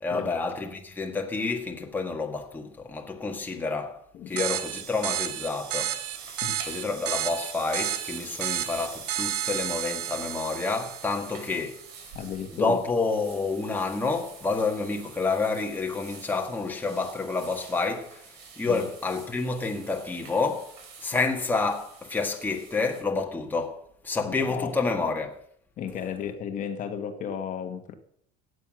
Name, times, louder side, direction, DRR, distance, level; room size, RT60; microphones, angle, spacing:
voice 1, 0.0-4.0 4.3-6.0 6.7-11.8 12.5-20.7 21.0-25.4, left 3 dB, 10° left, 1.7 m, -29 dB
sound 1, 4.3-23.0, right 5 dB, 70° right, 5.6 m, -47 dB
sound 2, 4.4-11.5, right 11 dB, 85° right, 1.6 m, -32 dB
voice 2, 12.1-12.8 18.7-18.8 24.2-24.7 25.8-27.9, left 8 dB, 40° left, 1.5 m, -34 dB
16.5 x 9.4 x 6.4 m
cardioid pair, 150°, 21 cm